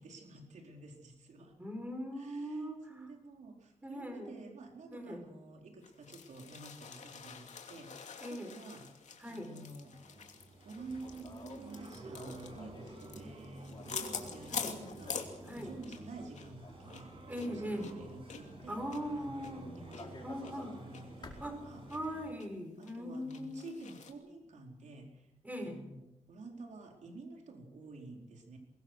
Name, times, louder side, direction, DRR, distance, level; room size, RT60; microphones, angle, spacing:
voice 1, 0.0-1.6 2.1-8.9 9.3-9.9 10.6-17.2 17.5-18.8 19.1-21.8 22.8-25.3 25.6-28.6, right 2 dB, 85° right, 2 dB, 4.5 m, -50 dB
voice 2, 1.6-3.1 3.8-4.3 4.9-5.2 8.2-8.5 9.2-9.5 14.5-14.7 15.4-15.7 17.3-17.9 18.7-19.6 20.2-20.8 21.4-21.6 21.9-23.7 25.4-25.8, equal, 15° right, 5 dB, 5.3 m, -40 dB
sound 1, 5.8-16.1 16.3-16.5 16.9-20.0 20.4-20.5 20.9-21.0 21.4-22.0 22.4-22.5 22.8-24.1, left 6 dB, 80° left, 2.8 m, -46 dB
sound 2, 9.6-22.3, right 2 dB, 45° right, 7.7 m, -51 dB
sound 3, 10.8-22.2, left 3 dB, 40° left, 5.1 m, -55 dB
23.5 x 22.0 x 6.4 m, 0.88 s
wide cardioid pair, 140°, 12 cm